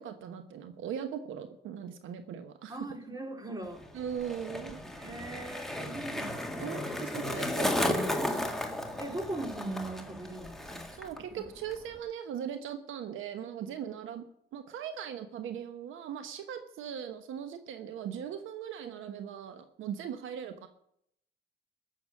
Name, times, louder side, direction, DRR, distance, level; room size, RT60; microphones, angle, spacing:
voice 1, 0.0-2.8 3.9-4.8 6.6-8.4 11.0-14.2 14.5-20.7, right 8 dB, 80° right, 8 dB, 1.2 m, -39 dB
voice 2, 2.7-3.8 4.9-7.0 7.3-7.5 9.0-11.0 11.3-11.5, right 2 dB, 20° right, 3 dB, 3.2 m, -40 dB
Skateboard, 3.6-11.2 11.5-12.0, left 1 dB, ahead, 2.0 m, -34 dB
15.0 x 7.0 x 8.3 m, 0.72 s
cardioid pair, 90°, 20 cm